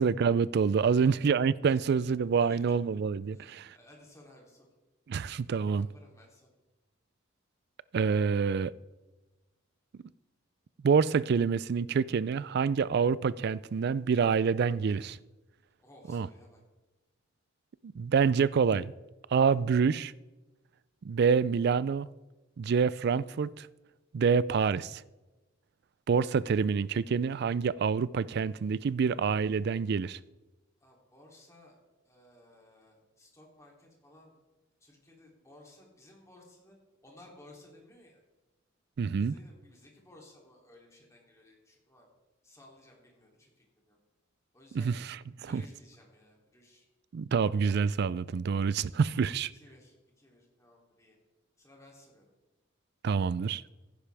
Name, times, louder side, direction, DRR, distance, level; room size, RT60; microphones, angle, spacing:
voice 1, 0.0-3.7 5.1-5.9 7.9-8.7 10.8-15.2 16.1-16.3 17.9-18.9 19.3-20.1 21.0-22.1 22.6-23.7 24.1-25.0 26.1-30.2 39.0-39.3 44.7-45.1 45.5-45.6 47.1-49.5 53.0-53.6, right 6 dB, 55° right, 0.3 m, -27 dB
voice 2, 0.8-1.3 1.7-2.0 2.4-2.7 3.3-4.7 5.4-6.5 15.8-16.6 30.8-31.8 32.0-34.3 34.8-36.8 37.0-38.2 39.0-42.1 42.4-44.0 44.5-45.0 45.4-46.9 49.1-51.2 51.6-52.2 53.4-53.5, left 1 dB, 15° left, 2.9 m, -57 dB
15.5 x 10.0 x 3.4 m
head